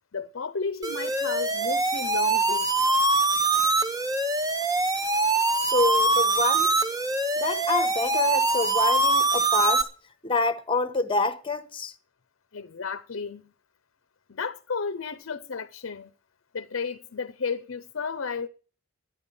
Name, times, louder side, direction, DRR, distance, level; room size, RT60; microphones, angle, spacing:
voice 1, 0.1-2.7 12.5-13.5 14.3-16.1 16.5-18.5, left 5 dB, 65° left, 0.6 m, -33 dB
sound 1, 0.8-9.8, right 2 dB, 15° right, 1.0 m, -23 dB
voice 2, 5.7-6.7 7.4-9.8 10.2-11.9, left 3 dB, 25° left, 1.1 m, -27 dB
12.5 x 10.5 x 6.9 m
head